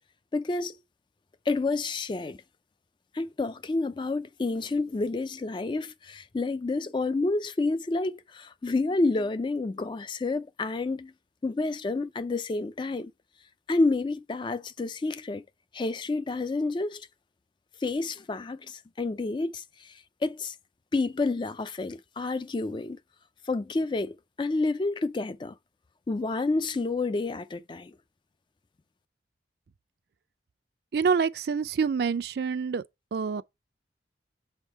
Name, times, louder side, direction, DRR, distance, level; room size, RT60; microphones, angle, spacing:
voice 1, 0.3-0.8 1.5-2.4 3.1-11.1 11.4-13.1 13.7-15.4 15.7-17.1 17.8-20.5 20.9-23.0 23.5-25.5 26.1-27.9, left 3 dB, 25° left, 0.3 m, -29 dB
voice 2, 30.9-32.8 33.1-33.4, right 5 dB, 55° right, 0.3 m, -26 dB
7.1 x 3.7 x 4.4 m
head